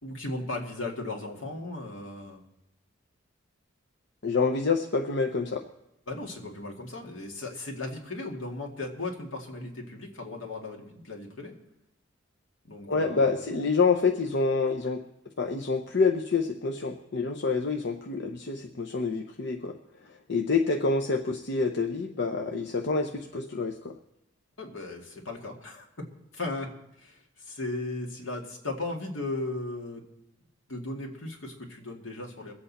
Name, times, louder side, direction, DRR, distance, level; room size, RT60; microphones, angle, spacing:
voice 1, 0.0-2.4 6.1-11.5 12.6-13.3 24.6-25.9 26.3-26.7 27.0-30.1 30.7-32.5, left 2 dB, 80° left, 0 dB, 2.4 m, -36 dB
voice 2, 4.2-5.7 12.9-15.0 15.4-19.8 20.0-23.9, left 4 dB, 60° left, 3 dB, 0.8 m, -27 dB
23.5 x 8.1 x 4.2 m, 0.86 s
head